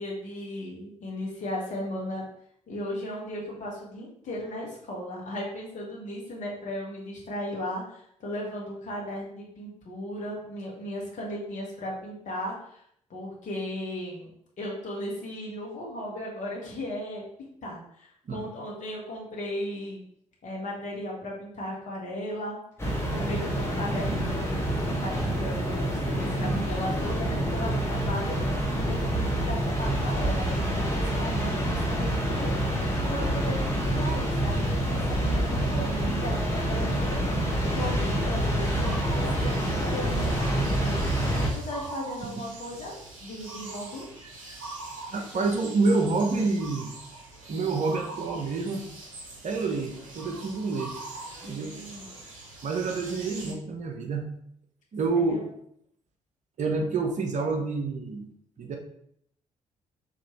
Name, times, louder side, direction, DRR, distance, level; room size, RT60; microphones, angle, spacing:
voice 1, 0.0-2.2 2.7-12.8 13.1-14.3 14.6-17.2 17.6-20.0 20.4-22.6 23.1-24.4 24.8-28.4 28.7-41.0 41.5-44.1 51.4-52.1 55.1-55.4, left 1 dB, 45° left, -3 dB, 1.6 m, -36 dB
sound 1, 22.8-41.5, right 1 dB, 15° left, 1.3 m, -27 dB
sound 2, 38.6-53.5, right 2 dB, 80° right, 0.7 m, -43 dB
voice 2, 45.1-46.9 47.5-48.9 49.4-50.9 51.4-51.7 52.6-54.3 54.9-55.4 56.6-58.3 58.6-58.8, right 3 dB, 45° right, 3 dB, 0.9 m, -28 dB
5.1 x 3.1 x 3.1 m, 0.69 s
figure-of-eight pair, 40°, 17 cm